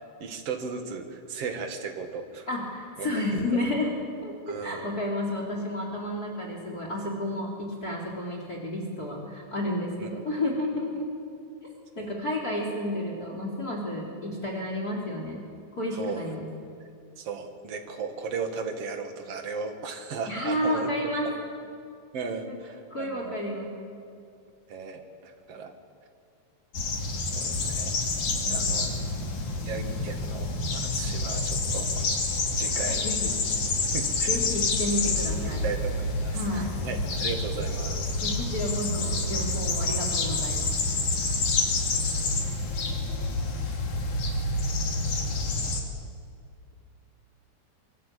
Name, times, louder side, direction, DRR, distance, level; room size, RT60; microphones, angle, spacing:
voice 1, 0.2-2.5 3.0-3.1 3.3-3.5 4.5-4.9 10.0-10.1 12.0-12.1 15.9-16.3 17.2-21.4 22.1-23.4 24.7-25.7 27.3-28.0 28.5-28.9 29.6-32.2 32.5-33.2 33.9-34.4 35.4-38.1, right 5 dB, 55° right, 4 dB, 2.9 m, -36 dB
voice 2, 2.5-3.9 4.2-11.1 12.0-15.4 15.8-16.5 20.3-21.3 22.5-22.6 22.9-23.8 28.4-29.4 32.8-33.3 34.3-35.6 36.3-36.8 38.2-40.8, left 1 dB, 30° left, 0 dB, 4.0 m, -31 dB
sound 1, 26.7-45.8, left 3 dB, 70° left, 4.1 m, -28 dB
24.5 x 24.5 x 8.5 m, 2.3 s
omnidirectional pair, 3.5 m